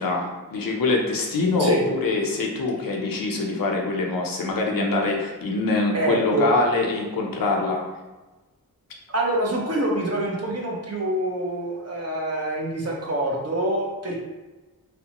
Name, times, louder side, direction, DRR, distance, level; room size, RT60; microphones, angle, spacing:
voice 1, 0.0-7.8, left 3 dB, 70° left, 0 dB, 0.6 m, -24 dB
voice 2, 5.9-6.5 9.1-14.2, right 1 dB, 45° right, -2 dB, 0.7 m, -25 dB
2.9 x 2.0 x 2.9 m, 1.1 s
cardioid pair, 50°, 36 cm